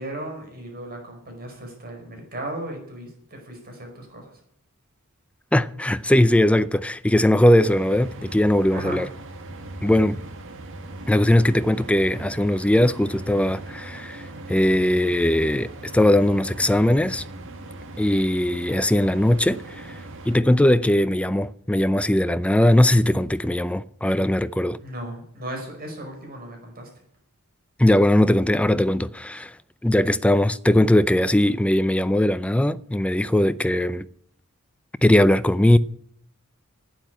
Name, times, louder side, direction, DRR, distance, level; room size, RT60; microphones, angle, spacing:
voice 1, 0.0-4.3 8.7-9.0 24.8-26.9, right 1 dB, 45° right, 5.1 m, -36 dB
voice 2, 5.5-9.1 9.8-10.2 11.1-17.2 18.0-20.0 20.3-24.8 27.8-29.6 29.8-34.1 35.0-35.8, left 1 dB, 5° left, 0.5 m, -20 dB
sound 1, 7.6-20.4, right 2 dB, 60° right, 1.8 m, -39 dB
12.0 x 9.2 x 9.6 m
head